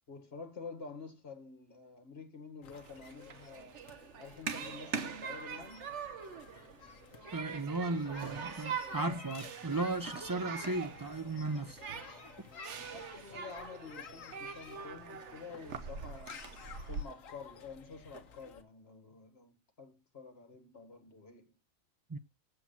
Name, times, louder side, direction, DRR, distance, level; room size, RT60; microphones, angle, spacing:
voice 1, 0.1-3.8 4.2-5.9 12.9-16.4 16.9-21.5, left 4 dB, 50° left, 2.0 m, -49 dB
sound 1, 2.6-18.6, left 6 dB, 80° left, 1.4 m, -53 dB
Human group actions, 2.7-17.0, right 6 dB, 60° right, 1.2 m, -43 dB
voice 2, 7.3-11.8 22.1-22.2, right 2 dB, 35° right, 0.3 m, -35 dB
8.0 x 7.4 x 7.0 m
omnidirectional pair, 1.4 m